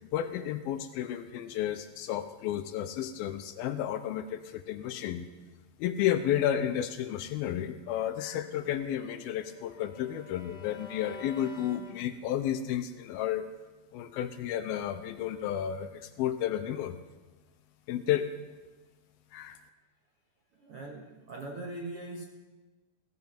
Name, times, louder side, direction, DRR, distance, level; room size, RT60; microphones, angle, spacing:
voice 1, 0.1-5.3 5.8-13.5 13.9-17.0 17.9-18.3 19.3-19.6, left 10 dB, 80° left, 10 dB, 2.5 m, -32 dB
Bowed string instrument, 8.5-12.7, left 3 dB, 65° left, 1.5 m, -50 dB
voice 2, 20.6-22.2, right 2 dB, 70° right, 1 dB, 1.4 m, -41 dB
17.5 x 16.0 x 4.4 m, 1.2 s
omnidirectional pair, 4.5 m